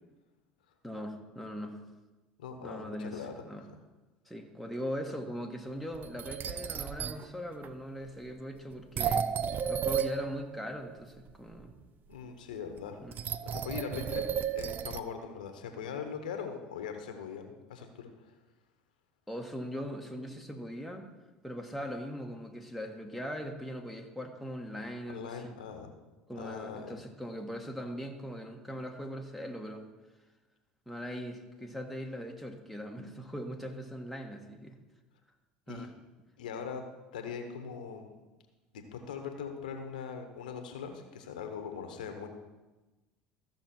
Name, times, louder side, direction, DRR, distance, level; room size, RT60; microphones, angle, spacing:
voice 1, 0.8-1.8 2.6-3.6 4.3-9.3 9.7-11.7 13.0-13.1 14.1-14.2 19.3-21.1 21.4-25.5 26.3-29.9 30.8-34.8 35.7-35.9, equal, ahead, 3 dB, 1.6 m, -40 dB
voice 2, 2.4-3.4 12.1-13.0 13.4-14.2 14.5-18.3 25.1-25.9 26.4-27.0 35.7-35.9 36.4-36.8 37.1-38.1 38.7-42.3, left 6 dB, 85° left, 6 dB, 1.1 m, -41 dB
sound 1, 5.9-7.3 7.6-7.7 8.7-11.0 11.3-11.6 12.8-12.9 13.1-15.0, right 8 dB, 45° right, 0.5 m, -33 dB
14.5 x 6.0 x 4.5 m, 1.1 s
hypercardioid pair, 75°, 4 cm